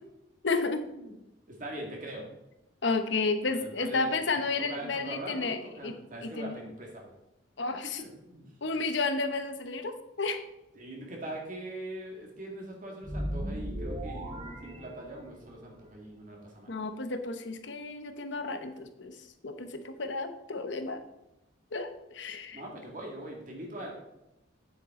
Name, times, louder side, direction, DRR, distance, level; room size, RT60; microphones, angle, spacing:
voice 1, 0.4-0.9 2.8-6.0 6.2-6.6 7.6-8.0 8.6-10.4 16.7-19.2 19.4-21.0 21.7-22.6, left 3 dB, 70° left, 8 dB, 1.0 m, -32 dB
voice 2, 1.5-2.3 3.4-4.1 4.6-7.1 7.8-8.5 10.7-16.7 22.5-23.9, right 1 dB, 45° right, -1 dB, 2.1 m, -42 dB
sound 1, 13.0-15.6, equal, 30° right, 1.4 m, -37 dB
9.8 x 7.5 x 3.8 m, 0.90 s
head